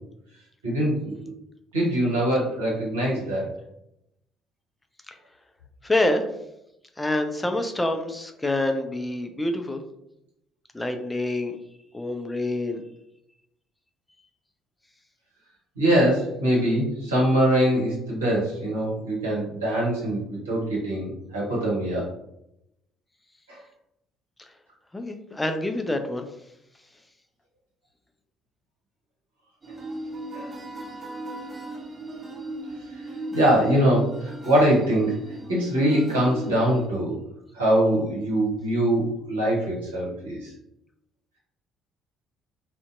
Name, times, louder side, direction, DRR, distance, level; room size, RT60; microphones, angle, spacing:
voice 1, 0.6-1.3 1.7-3.5 15.8-22.1 23.5-23.6 30.3-30.5 33.3-35.2 35.5-37.2 37.5-40.5, right 1 dB, 80° right, -6 dB, 0.9 m, -23 dB
voice 2, 5.8-6.3 7.0-9.8 10.7-11.6 11.9-12.8 24.4-24.5 24.9-26.2, left 1 dB, 15° left, 5 dB, 0.3 m, -26 dB
sound 1, 29.6-36.9, right 1 dB, 25° right, 0.8 m, -37 dB
2.5 x 2.1 x 2.5 m, 0.81 s
figure-of-eight pair, 50°, 0 cm